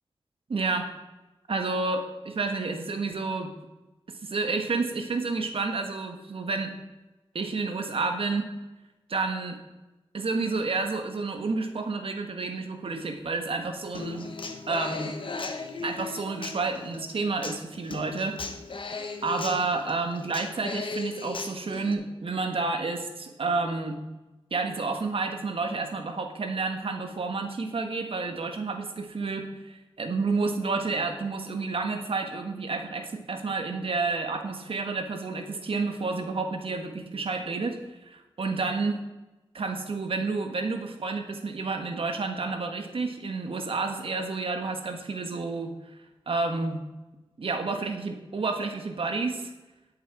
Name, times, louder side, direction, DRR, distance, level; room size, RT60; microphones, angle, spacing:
voice 1, 0.5-0.9 1.5-3.5 4.1-6.7 7.3-8.5 9.1-9.6 10.1-14.3 14.7-15.1 15.8-18.4 19.2-24.0 24.5-39.0 39.5-45.7 46.3-46.8 47.4-49.5, right 3 dB, 70° right, 5 dB, 1.5 m, -30 dB
Human voice / Acoustic guitar, 13.9-21.9, left 3 dB, 60° left, 1.2 m, -37 dB
11.0 x 8.2 x 4.8 m, 1.1 s
wide cardioid pair, 90°, 10 cm